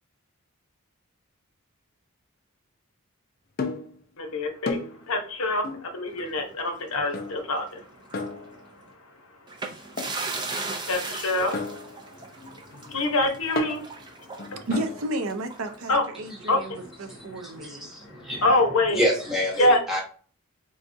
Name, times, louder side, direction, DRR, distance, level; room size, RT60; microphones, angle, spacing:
sound 1, 3.6-4.0 4.7-5.1 5.6-5.9 7.1-7.6 8.1-8.9 10.0-10.3 11.5-15.1, left 3 dB, 40° left, 0.4 m, -34 dB
voice 1, 4.2-4.8 5.1-7.8 10.9-11.6 12.9-13.8 14.5-14.6 15.9-16.0 16.5-16.6 18.4-19.0 19.6-19.8, left 2 dB, 70° left, 0.8 m, -24 dB
sound 2, 6.1-7.7 8.0-8.2 9.5-16.0, right 3 dB, 20° right, 0.4 m, -37 dB
voice 2, 14.7-17.9, right 1 dB, 70° right, 0.5 m, -32 dB
voice 3, 17.1-18.5 18.9-20.0, equal, ahead, 1.0 m, -28 dB
3.9 x 2.3 x 2.5 m
head